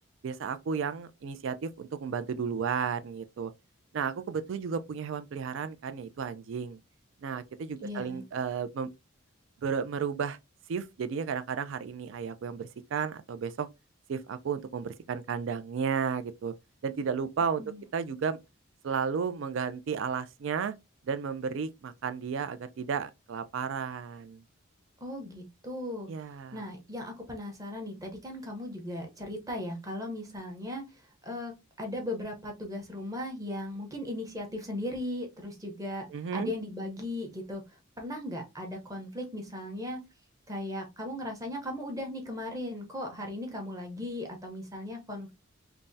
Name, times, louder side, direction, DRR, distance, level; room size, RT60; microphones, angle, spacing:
voice 1, 0.2-3.5 3.9-6.8 7.2-8.9 9.6-10.4 10.7-13.7 14.1-16.5 16.8-17.6 17.9-18.4 18.8-20.7 21.1-24.4 26.1-26.6 36.1-36.5, right 6 dB, 65° right, 0.3 m, -33 dB
voice 2, 7.8-8.2 17.6-17.8 25.0-26.1 26.5-30.8 31.2-36.1 36.3-37.6 38.0-40.0 40.5-45.3, left 1 dB, 15° right, 0.7 m, -37 dB
3.4 x 2.0 x 2.6 m
head